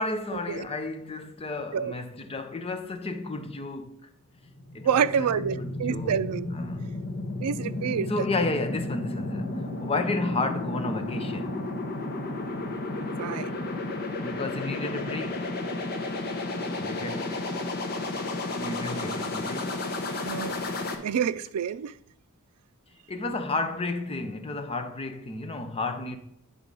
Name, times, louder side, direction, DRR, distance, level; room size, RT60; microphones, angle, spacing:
voice 1, 0.0-4.1 4.7-5.1 5.4-6.2 6.5-7.0 8.1-11.7 14.2-15.5 16.8-17.4 18.6-19.8 23.1-26.2, left 2 dB, 25° left, 0.6 m, -32 dB
sound 1, 4.4-20.9, left 2 dB, 45° left, 1.1 m, -32 dB
voice 2, 4.8-6.6 7.4-8.3 13.2-13.5 20.2-20.6 21.0-21.9, right 7 dB, 90° right, 0.4 m, -27 dB
9.8 x 3.8 x 5.3 m
head